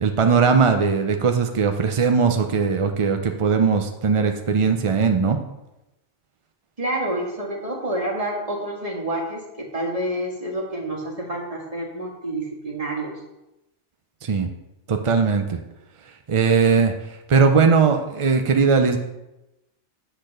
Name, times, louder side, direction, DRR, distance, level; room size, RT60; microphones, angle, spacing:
voice 1, 0.0-5.4 14.2-14.5 14.9-15.6 16.3-16.9 17.3-19.0, right 5 dB, 50° right, 5 dB, 0.4 m, -19 dB
voice 2, 6.8-13.1, right 1 dB, 30° right, -1 dB, 1.7 m, -28 dB
8.8 x 4.0 x 6.4 m, 0.95 s
omnidirectional pair, 1.2 m